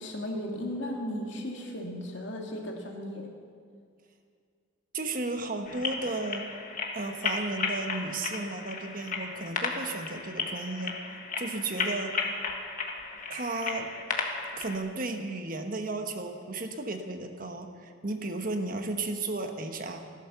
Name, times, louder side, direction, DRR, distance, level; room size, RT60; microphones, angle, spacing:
voice 1, 0.0-3.3, left 1 dB, 65° left, 0 dB, 2.5 m, -35 dB
voice 2, 4.9-6.5 6.9-12.2 13.3-13.9 14.6-20.0, right 2 dB, 45° right, 5 dB, 1.2 m, -34 dB
sound 1, 5.7-14.8, left 4 dB, 40° left, 1.5 m, -34 dB
15.5 x 12.5 x 7.0 m, 2.1 s
head